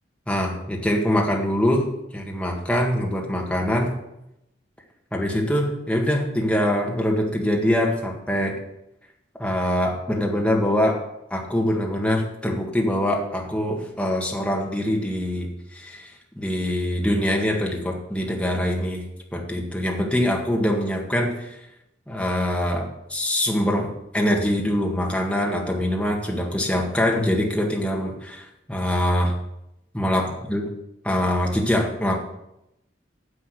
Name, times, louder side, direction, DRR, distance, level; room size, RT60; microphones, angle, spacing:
voice 1, 0.3-3.9 5.1-8.6 9.4-11.0 11.3-21.6 22.1-29.3 29.9-30.6 31.0-32.2, left 1 dB, 5° left, -1 dB, 1.8 m, -24 dB
10.0 x 6.8 x 6.7 m, 0.84 s
head